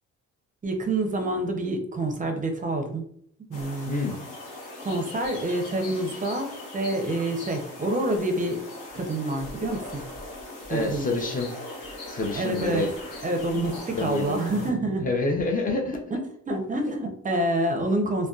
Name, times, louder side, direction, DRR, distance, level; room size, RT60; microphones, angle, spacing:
voice 1, 0.6-3.0 3.5-4.0 4.8-8.6 8.9-10.0 10.7-11.1 12.3-12.9 13.2-15.0 16.1-18.3, right 1 dB, 25° right, 4 dB, 0.5 m, -27 dB
sound 1, 3.5-14.7, left 2 dB, 90° left, 0.8 m, -40 dB
voice 2, 10.7-11.5 12.1-12.9 13.9-14.7 15.0-16.0, left 2 dB, 30° left, 2 dB, 0.5 m, -27 dB
2.5 x 2.1 x 2.3 m, 0.66 s
cardioid pair, 90°, 30 cm